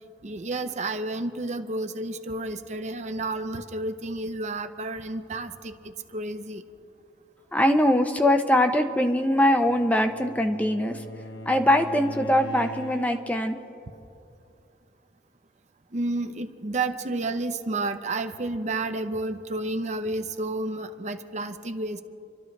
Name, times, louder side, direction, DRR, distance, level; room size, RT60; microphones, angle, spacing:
voice 1, 0.2-6.6 15.9-22.0, right 2 dB, 40° right, 8 dB, 0.7 m, -31 dB
voice 2, 7.5-11.0 11.5-13.6, left 1 dB, 10° left, 6 dB, 0.6 m, -22 dB
Bowed string instrument, 9.5-13.4, equal, 75° left, 0.7 m, -41 dB
29.0 x 12.5 x 3.2 m, 2.6 s
head